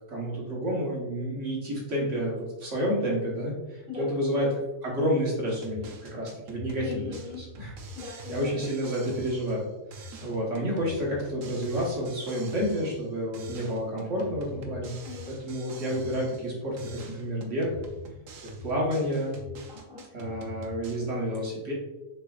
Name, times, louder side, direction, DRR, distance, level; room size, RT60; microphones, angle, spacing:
voice 1, 0.1-7.7 8.3-9.7 9.9-14.9 15.3-17.7 18.6-19.3 20.1-21.7, equal, 70° right, -4 dB, 1.5 m, -30 dB
voice 2, 3.9-4.5 6.8-7.5 7.9-8.7 14.8-15.3 19.7-20.1, left 6 dB, 5° right, -6 dB, 1.4 m, -40 dB
sound 1, 5.5-9.7 9.9-13.1 13.3-16.5 16.8-21.0, right 1 dB, 85° right, 1.1 m, -44 dB
6.5 x 3.3 x 2.4 m, 1.0 s
omnidirectional pair, 1.3 m